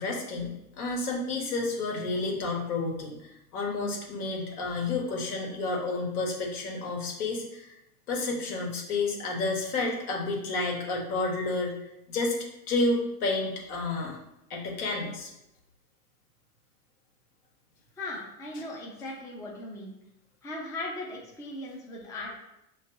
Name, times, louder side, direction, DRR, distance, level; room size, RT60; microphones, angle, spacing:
voice 1, 0.0-3.2 3.5-7.7 8.1-11.7 12.1-12.3 12.7-14.2 14.5-15.3, left 3 dB, 70° left, -1 dB, 1.5 m, -30 dB
voice 2, 18.0-19.9 20.4-22.3, left 2 dB, 5° left, -3 dB, 0.5 m, -38 dB
5.6 x 3.1 x 2.6 m, 0.87 s
hypercardioid pair, 110°, 46 cm